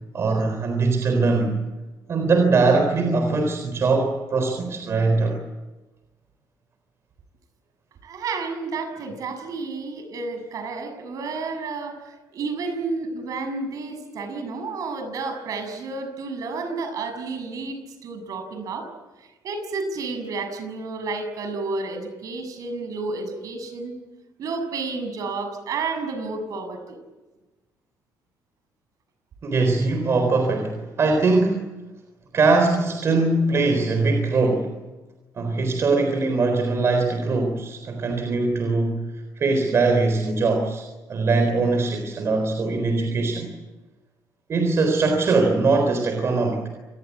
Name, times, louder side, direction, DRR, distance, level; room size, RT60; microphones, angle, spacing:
voice 1, 0.1-1.6 2.1-5.4 29.4-31.7 32.3-34.7 35.4-43.5 44.5-46.7, right 3 dB, 40° right, 4 dB, 3.9 m, -21 dB
voice 2, 8.0-18.9 19.2-23.9 24.4-27.0, right 3 dB, 55° right, 8 dB, 6.7 m, -31 dB
28.0 x 20.0 x 8.5 m, 1.2 s
cardioid pair, 125°, 7 cm